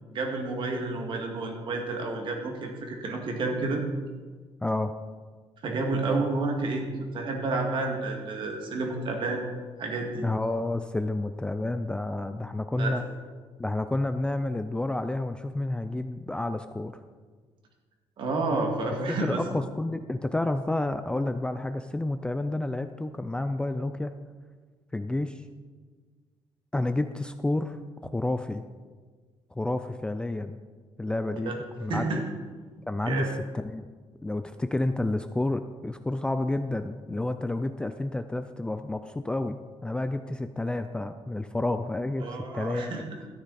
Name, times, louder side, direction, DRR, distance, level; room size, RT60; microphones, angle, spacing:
voice 1, 0.1-3.8 5.6-6.9 7.1-9.4 9.8-10.3 12.8-13.0 18.2-19.4 31.4-31.6 31.9-32.2 33.1-33.3 42.2-43.2, right 3 dB, 50° right, 2 dB, 2.1 m, -30 dB
voice 2, 4.6-4.9 10.2-13.0 13.6-16.9 19.1-24.1 24.9-25.4 26.7-28.6 29.6-30.6 31.0-32.0 32.9-33.3 33.5-33.9 34.2-42.2 42.5-43.0, left 2 dB, 10° left, 9 dB, 0.4 m, -30 dB
13.5 x 9.7 x 4.2 m, 1.5 s
cardioid pair, 145°, 10 cm